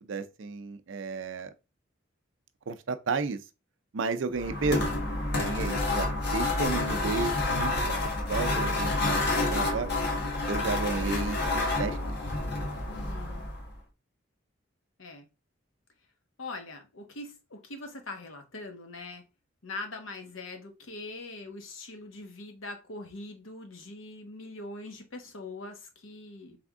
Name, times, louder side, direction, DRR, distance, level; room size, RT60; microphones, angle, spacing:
voice 1, 0.0-1.5 2.7-3.4 3.9-4.9 5.4-7.9 8.2-9.9 10.5-12.0, right 4 dB, 70° right, 0.5 m, -32 dB
sound 1, 4.3-13.7, left 2 dB, 55° left, 1.1 m, -29 dB
voice 2, 12.9-13.5 15.0-15.3 16.4-19.2 19.6-26.6, left 2 dB, 80° left, 1.0 m, -42 dB
3.5 x 3.5 x 3.5 m
head